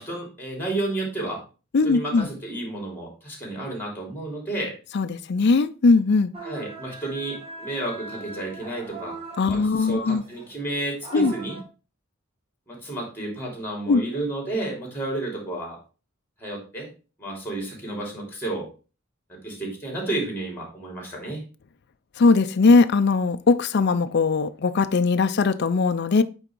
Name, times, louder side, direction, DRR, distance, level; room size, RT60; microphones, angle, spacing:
voice 1, 0.0-1.4 1.8-4.7 6.4-9.1 9.5-11.6 12.7-15.8 16.4-16.9 17.2-18.7 19.3-21.4, right 2 dB, 10° left, 3.2 m, -31 dB
voice 2, 1.7-2.3 4.9-6.3 9.4-10.2 11.1-11.3 13.9-14.0 22.2-26.2, left 4 dB, 55° left, 0.5 m, -20 dB
sound 1, 6.3-11.6, right 3 dB, 30° right, 1.7 m, -40 dB
9.0 x 3.6 x 4.5 m
head